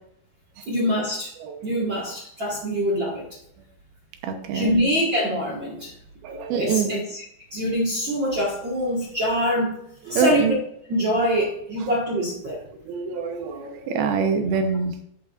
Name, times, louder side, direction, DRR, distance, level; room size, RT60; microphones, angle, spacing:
voice 1, 0.7-1.3 1.6-3.2 4.5-5.9 6.3-7.0 7.5-9.7 10.0-10.5 10.9-12.6, equal, 50° right, -4 dB, 1.4 m, -24 dB
voice 2, 1.4-1.7 4.2-4.8 6.2-6.9 10.1-10.6 12.9-15.1, right 6 dB, 75° right, 6 dB, 2.7 m, -25 dB
11.5 x 7.9 x 2.5 m, 0.71 s
omnidirectional pair, 4.8 m